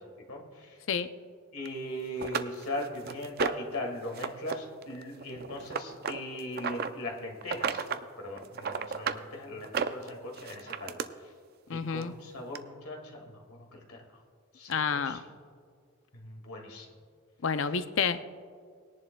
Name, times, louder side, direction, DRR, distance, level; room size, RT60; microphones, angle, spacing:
voice 1, 0.3-0.8 1.5-11.3 11.7-14.2 14.5-15.3 16.1-16.9, left 1 dB, 85° left, 1 dB, 2.0 m, -39 dB
sound 1, 1.7-1.8 2.2-3.8 4.1-4.6 4.8-6.9 7.4-8.0 8.4-9.2 9.6-11.1 12.0-12.1 12.6-12.7, right 6 dB, 45° right, 0.4 m, -33 dB
voice 2, 11.7-12.1 14.7-15.2 17.4-18.2, left 6 dB, 60° left, 11 dB, 0.5 m, -29 dB
20.5 x 10.5 x 2.3 m, 2.1 s
head